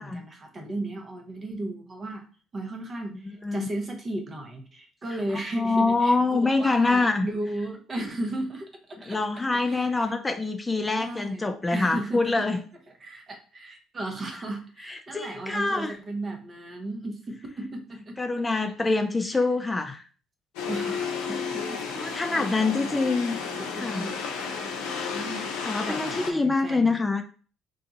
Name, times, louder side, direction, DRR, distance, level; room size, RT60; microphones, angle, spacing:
voice 1, 0.0-2.3 2.5-9.2 9.6-10.1 11.0-12.5 13.0-18.2 19.3-19.4 20.7-23.0 23.6-24.2 24.6-25.5 25.8-27.0, right 1 dB, 40° right, 3 dB, 0.9 m, -35 dB
voice 2, 5.6-7.3 9.1-12.6 14.9-16.0 18.2-20.0 21.9-23.4 23.8-24.1 25.6-27.2, left 3 dB, 20° left, 6 dB, 0.4 m, -25 dB
sound 1, 20.6-26.3, left 5 dB, 75° left, 0.6 m, -32 dB
2.6 x 2.3 x 3.9 m, 0.39 s
hypercardioid pair, 55°, 0 cm